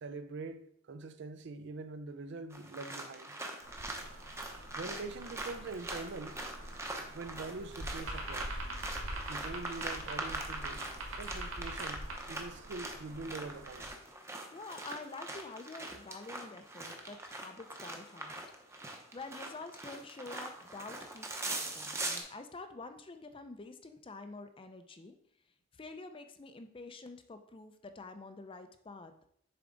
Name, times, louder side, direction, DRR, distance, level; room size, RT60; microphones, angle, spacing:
voice 1, 0.0-3.4 4.8-6.4 7.1-8.6 9.3-13.9, right 3 dB, 55° right, 0.5 m, -44 dB
sound 1, 2.5-22.2, right 2 dB, 15° right, 0.7 m, -43 dB
sound 2, 3.6-13.9, right 1 dB, 75° right, 1.7 m, -44 dB
voice 2, 14.5-18.4 18.8-25.2 25.7-29.3, left 3 dB, 25° left, 0.5 m, -48 dB
6.9 x 4.7 x 3.8 m
head